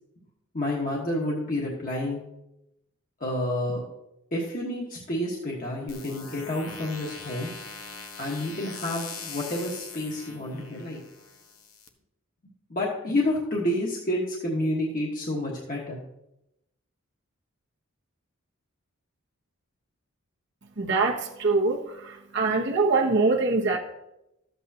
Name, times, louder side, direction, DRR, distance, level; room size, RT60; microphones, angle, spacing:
voice 1, 0.5-2.2 3.2-3.8 4.3-7.5 8.2-11.0 12.7-16.0, left 1 dB, 40° left, -3 dB, 1.4 m, -29 dB
sound 1, 5.9-11.9, left 5 dB, 80° left, 1.0 m, -42 dB
voice 2, 20.8-23.8, right 3 dB, 55° right, -1 dB, 1.1 m, -24 dB
13.0 x 8.1 x 2.8 m, 0.87 s
head